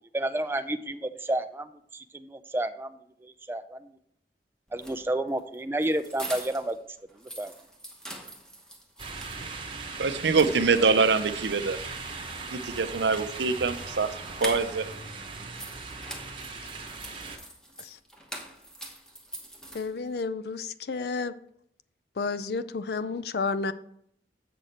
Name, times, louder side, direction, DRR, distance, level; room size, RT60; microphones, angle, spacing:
voice 1, 0.1-1.7 1.9-2.9 3.5-3.8 4.7-6.8 7.4-7.5, right 1 dB, 10° right, 9 dB, 0.3 m, -30 dB
sound 1, 4.7-6.8 7.1-9.4 9.8-9.9 10.2-11.1 12.7-15.0 15.3-20.2, right 1 dB, 5° left, 1.0 m, -43 dB
sound 2, 9.0-17.4, right 4 dB, 30° right, 1.0 m, -39 dB
voice 2, 10.0-11.8 12.5-14.1 14.4-14.8, right 4 dB, 75° right, 11 dB, 0.6 m, -24 dB
voice 3, 19.7-21.3 22.2-23.7, left 4 dB, 60° left, 13 dB, 0.4 m, -31 dB
7.7 x 6.5 x 4.3 m, 0.70 s
head